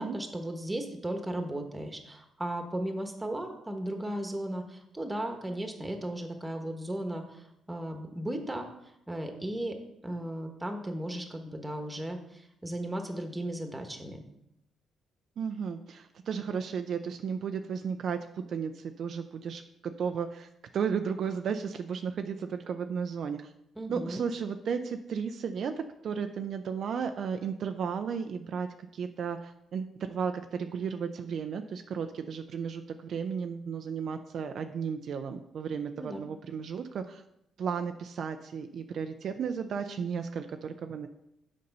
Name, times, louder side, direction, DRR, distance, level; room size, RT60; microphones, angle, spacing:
voice 1, 0.0-8.7 9.1-9.7 10.0-14.2 23.8-24.2 36.0-36.2, right 1 dB, 10° right, 4 dB, 1.3 m, -36 dB
voice 2, 15.4-23.5 23.9-28.7 28.9-37.2 37.6-41.1, right 6 dB, 60° right, 7 dB, 0.5 m, -34 dB
6.7 x 5.3 x 5.4 m, 0.80 s
cardioid pair, 90°, 0 cm